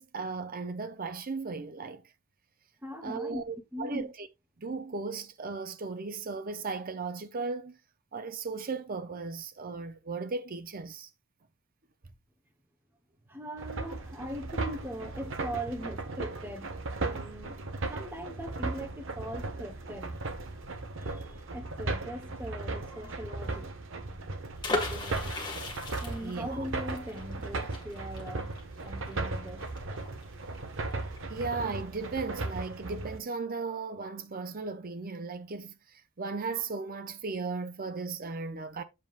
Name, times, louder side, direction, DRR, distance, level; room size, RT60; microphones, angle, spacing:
voice 1, 0.0-2.0 3.0-4.3 4.6-7.8 8.1-11.1 26.2-26.6 31.3-38.8, right 4 dB, 40° right, 0.7 m, -36 dB
voice 2, 2.8-3.4 3.7-4.1 13.3-16.7 17.0-17.6 17.9-20.2 21.0-23.7 24.7-25.2 26.0-28.5 28.8-29.6, equal, 10° right, 1.1 m, -40 dB
sound 1, 13.6-33.2, right 2 dB, 60° right, 1.0 m, -37 dB
sound 2, 24.6-30.2 30.5-30.6 30.9-31.2, left 2 dB, 20° left, 1.8 m, -36 dB
7.6 x 7.2 x 2.4 m
head